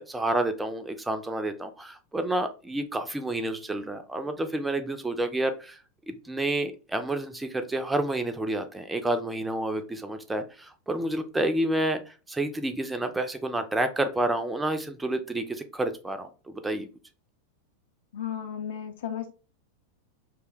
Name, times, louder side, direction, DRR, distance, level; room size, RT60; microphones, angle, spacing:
voice 1, 0.0-5.8 6.1-16.9, right 1 dB, 10° right, 7 dB, 0.4 m, -29 dB
voice 2, 18.1-19.3, left 9 dB, 55° left, 7 dB, 0.5 m, -34 dB
2.7 x 2.1 x 3.7 m, 0.34 s
figure-of-eight pair, 90°, 0 cm